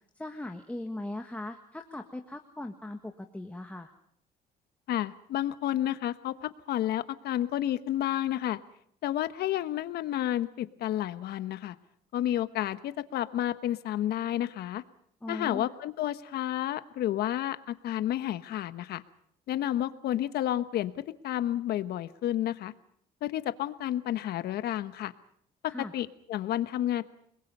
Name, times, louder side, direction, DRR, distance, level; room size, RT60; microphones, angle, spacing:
voice 1, 0.1-3.9 15.2-15.7 25.6-25.9, left 1 dB, 10° left, 4 dB, 1.6 m, -39 dB
voice 2, 4.9-8.6 9.0-11.8 12.1-14.8 15.3-19.0 19.5-20.9 21.2-22.7 23.2-25.1 25.6-27.0, left 12 dB, 70° left, 13 dB, 1.2 m, -31 dB
30.0 x 21.0 x 5.5 m, 0.68 s
cardioid pair, 110°, 17 cm